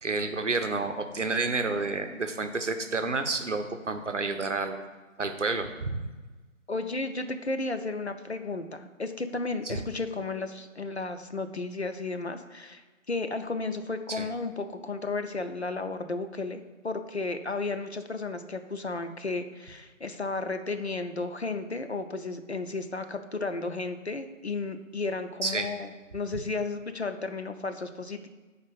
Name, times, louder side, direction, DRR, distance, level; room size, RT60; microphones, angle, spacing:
voice 1, 0.0-4.8 5.2-6.1 9.7-9.8 14.1-14.3 25.4-25.7, right 3 dB, 65° right, 8 dB, 0.7 m, -30 dB
voice 2, 6.7-12.8 13.1-28.3, left 3 dB, 55° left, 8 dB, 0.5 m, -33 dB
4.6 x 4.0 x 5.5 m, 1.2 s
figure-of-eight pair, 165°, 40 cm